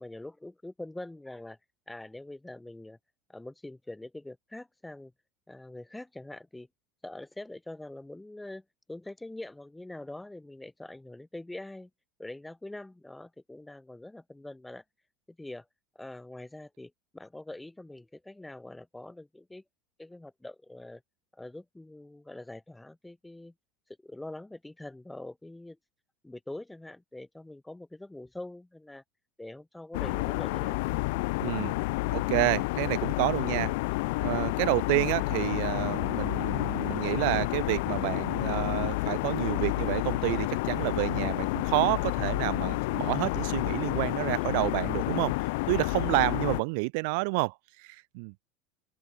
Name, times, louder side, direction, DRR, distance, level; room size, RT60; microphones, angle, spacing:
voice 1, 0.0-1.6 1.9-3.0 3.3-5.1 5.5-6.7 7.0-11.9 12.2-14.8 15.3-15.7 15.9-19.6 20.0-21.0 21.3-23.5 24.0-25.8 26.2-29.0 29.4-31.0, left 1 dB, 5° left, 4.0 m, -44 dB
sound 1, 29.9-46.6, left 24 dB, 75° left, 2.0 m, -30 dB
voice 2, 31.4-31.7 32.1-33.7 34.2-48.3, right 32 dB, 70° right, 3.7 m, -29 dB
open air
supercardioid pair, 110°, 0 cm